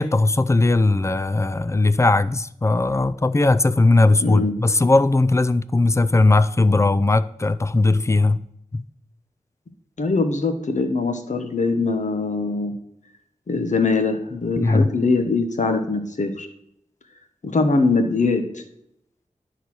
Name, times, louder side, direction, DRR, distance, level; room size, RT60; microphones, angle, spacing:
voice 1, 0.0-8.4 8.7-8.8 14.6-14.9, left 2 dB, 20° left, 0.4 m, -18 dB
voice 2, 4.2-4.5 10.0-12.7 13.5-16.5 17.4-18.6, left 3 dB, 60° left, 1.1 m, -22 dB
10.0 x 4.0 x 6.2 m
wide cardioid pair, 55°, 14 cm